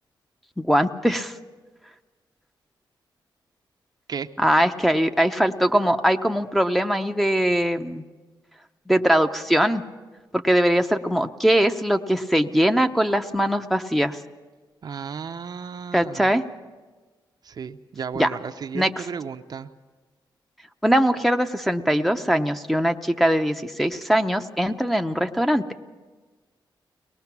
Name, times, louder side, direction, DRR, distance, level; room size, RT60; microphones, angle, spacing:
voice 1, 0.6-1.3 4.4-8.0 8.9-9.8 10.3-14.2 15.9-16.4 18.2-18.3 18.7-18.9 20.8-25.6, equal, ahead, 5 dB, 0.7 m, -21 dB
voice 2, 14.8-16.3 17.4-19.7, right 6 dB, 55° right, 8 dB, 0.7 m, -34 dB
23.0 x 19.0 x 6.0 m, 1.3 s
cardioid pair, 95°, 8 cm